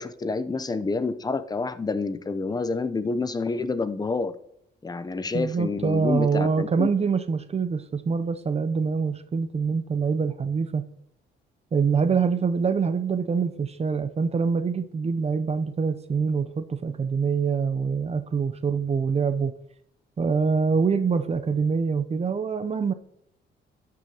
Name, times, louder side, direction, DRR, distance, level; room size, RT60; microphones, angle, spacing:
voice 1, 0.0-4.3 4.8-6.9, left 3 dB, 20° left, 0.6 m, -28 dB
voice 2, 5.3-10.9 11.7-19.5 20.2-22.9, right 5 dB, 30° right, 0.6 m, -25 dB
12.5 x 6.2 x 2.9 m
cardioid pair, 90°, 20 cm